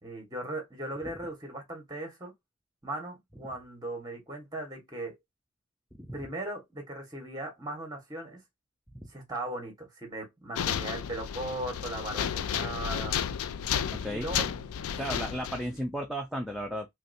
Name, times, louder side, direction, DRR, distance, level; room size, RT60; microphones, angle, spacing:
voice 1, 0.0-2.3 2.8-5.2 6.1-8.4 9.1-13.2 14.1-14.4 15.1-15.3, right 1 dB, 15° right, 1.2 m, -38 dB
sound 1, 10.5-15.8, left 8 dB, 70° left, 0.3 m, -32 dB
voice 2, 13.9-14.4 15.0-16.9, equal, ahead, 0.4 m, -34 dB
3.1 x 2.8 x 2.6 m
head